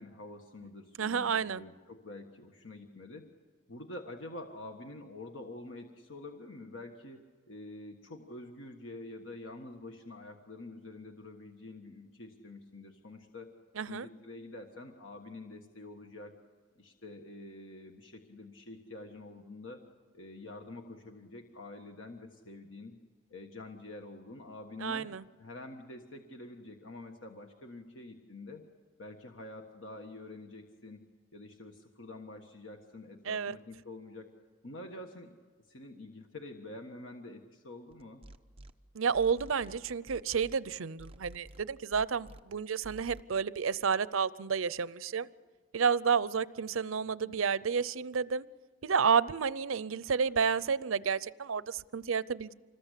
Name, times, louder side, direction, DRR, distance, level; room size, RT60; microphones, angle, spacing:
voice 1, 0.0-3.3 3.7-7.2 7.5-13.5 13.9-16.4 16.8-19.8 20.1-23.0 23.3-25.1 25.4-28.6 29.0-31.0 31.3-34.3 34.6-35.3 35.6-38.2 47.0-47.4, left 2 dB, 75° left, 4 dB, 1.5 m, -47 dB
voice 2, 1.0-1.6 13.8-14.1 24.8-25.2 33.3-33.6 38.9-45.3 45.7-48.4 48.8-52.5, right 6 dB, 90° right, 18 dB, 0.6 m, -30 dB
sound 1, 37.9-38.7 39.1-40.6 41.0-42.4 42.8-43.2, right 1 dB, 30° right, 1.0 m, -50 dB
26.0 x 20.0 x 8.3 m, 1.5 s
head